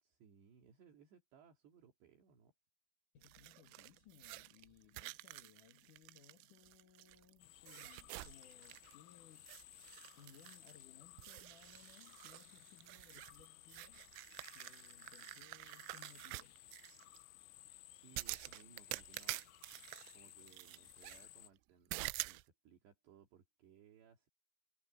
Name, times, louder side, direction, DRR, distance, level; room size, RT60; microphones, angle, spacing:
voice 1, 0.0-2.5 17.9-19.4 20.1-24.3, right 7 dB, 60° right, 4.7 m, -64 dB
voice 2, 3.1-9.6 10.2-14.1 14.5-16.6, left 9 dB, 65° left, 2.1 m, -64 dB
sound 1, 3.2-7.3 7.7-9.0 9.4-10.9 11.2-17.2 18.2-21.3 21.9-22.4, right 22 dB, 90° right, 3.2 m, -48 dB
sound 2, 7.4-21.5, left 17 dB, 90° left, 2.3 m, -60 dB
omnidirectional pair, 5.7 m